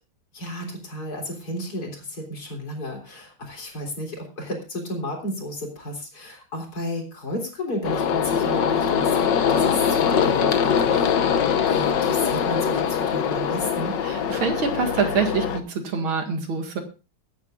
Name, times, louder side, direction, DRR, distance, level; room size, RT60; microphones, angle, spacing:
voice 1, 0.3-11.2 11.7-14.0, left 1 dB, 45° left, 1 dB, 4.1 m, -33 dB
sound 1, 7.8-15.6, left 7 dB, 60° left, 1.5 m, -22 dB
voice 2, 14.0-16.8, right 5 dB, 70° right, 5 dB, 2.7 m, -25 dB
23.0 x 9.5 x 2.5 m, 0.31 s
omnidirectional pair, 2.3 m